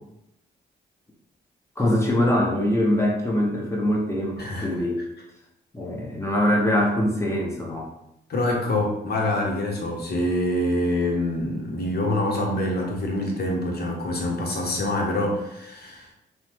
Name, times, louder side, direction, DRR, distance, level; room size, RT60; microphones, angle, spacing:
voice 1, 1.8-5.0 5.7-7.9, left 1 dB, 15° left, -2 dB, 0.9 m, -23 dB
voice 2, 4.4-4.7 8.3-16.1, left 1 dB, 50° left, 0 dB, 0.9 m, -25 dB
3.0 x 2.1 x 2.9 m, 0.82 s
supercardioid pair, 55°, 21 cm